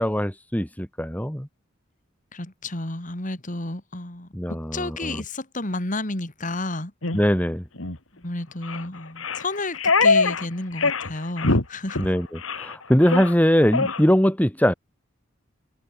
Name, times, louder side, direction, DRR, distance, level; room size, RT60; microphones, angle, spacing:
voice 1, 0.0-1.5 4.3-5.2 7.1-7.6 12.0-14.7, equal, 10° left, 2.0 m, -21 dB
voice 2, 2.3-6.9 8.1-12.1, left 2 dB, 40° left, 2.8 m, -31 dB
sound 1, 7.0-7.2 7.8-8.0 8.6-8.8 9.2-10.4 10.8-11.1 11.4-11.6 11.9-12.1 12.4-12.7 13.0-13.3 13.7-14.0, left 3 dB, 90° left, 2.7 m, -22 dB
head